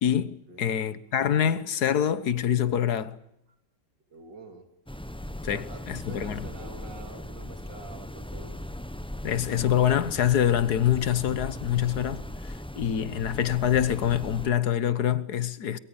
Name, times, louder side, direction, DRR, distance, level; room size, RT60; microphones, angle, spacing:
voice 1, 0.0-3.2 5.4-6.4 9.2-15.8, left 10 dB, 65° left, 1.7 m, -25 dB
voice 2, 4.1-4.6 5.5-8.6, right 3 dB, 75° right, 3.9 m, -46 dB
sound 1, 4.9-14.5, left 1 dB, 5° left, 0.4 m, -38 dB
24.0 x 23.0 x 8.9 m
omnidirectional pair, 1.9 m